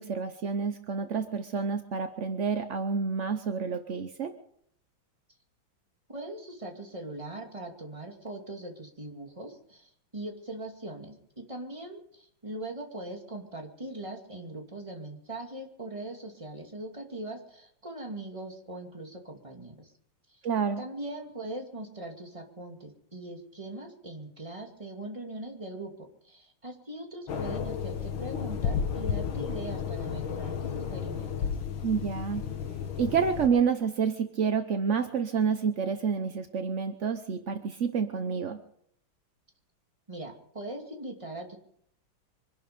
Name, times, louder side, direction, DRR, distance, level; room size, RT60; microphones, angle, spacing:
voice 1, 0.0-4.3 20.4-20.8 31.8-32.4 33.0-38.6, right 6 dB, 60° right, 8 dB, 0.7 m, -29 dB
voice 2, 6.1-19.9 20.3-20.4 20.8-31.5 40.1-41.6, right 1 dB, 15° right, 2 dB, 2.4 m, -41 dB
sound 1, 27.3-33.5, left 7 dB, 70° left, 2.1 m, -33 dB
25.0 x 11.0 x 5.2 m, 0.68 s
omnidirectional pair, 2.3 m